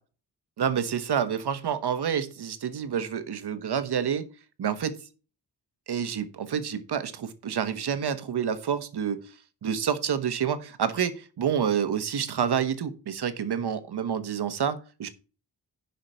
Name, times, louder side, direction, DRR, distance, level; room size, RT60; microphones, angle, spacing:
voice 1, 0.6-4.3 4.6-5.0 5.9-9.3 9.6-15.1, right 8 dB, 75° right, 11 dB, 1.3 m, -28 dB
10.5 x 5.9 x 4.5 m, 0.35 s
wide cardioid pair, 120°, 40 cm